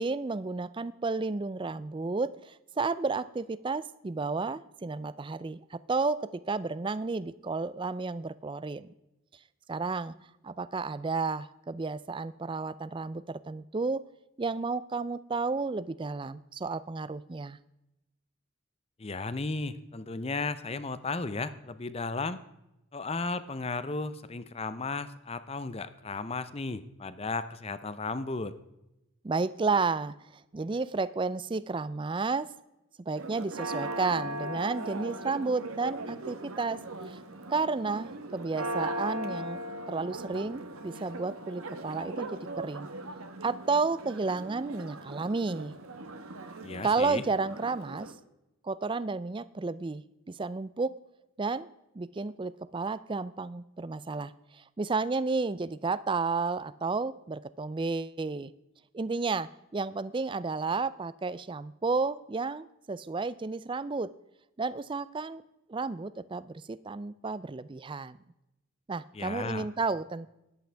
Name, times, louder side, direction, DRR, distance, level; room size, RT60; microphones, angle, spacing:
voice 1, 0.0-8.9 9.7-10.1 10.4-14.0 14.4-17.6 29.2-32.5 33.0-36.8 37.0-37.2 37.5-39.6 39.9-42.9 43.4-45.7 46.8-48.1 48.6-51.0 51.4-51.7 51.9-58.5 58.9-64.1 64.6-65.4 65.7-68.2 68.9-70.3, right 4 dB, 25° right, 17 dB, 0.3 m, -32 dB
voice 2, 19.0-22.4 22.9-28.6 46.6-47.2 69.1-69.7, left 3 dB, 30° left, 14 dB, 0.6 m, -35 dB
Church bell, 33.1-48.1, right 1 dB, 80° right, 1.2 m, -39 dB
14.0 x 11.0 x 3.4 m, 0.91 s
head